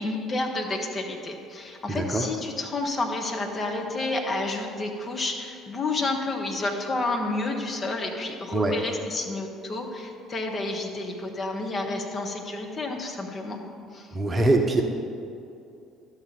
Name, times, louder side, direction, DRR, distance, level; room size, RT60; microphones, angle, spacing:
voice 1, 0.0-13.6 13.9-14.2, left 2 dB, 35° left, 1 dB, 1.3 m, -30 dB
voice 2, 1.9-2.2 8.5-8.7 14.1-14.8, right 2 dB, 25° right, 3 dB, 1.0 m, -23 dB
12.0 x 7.2 x 4.3 m, 2.6 s
figure-of-eight pair, 55°, 0 cm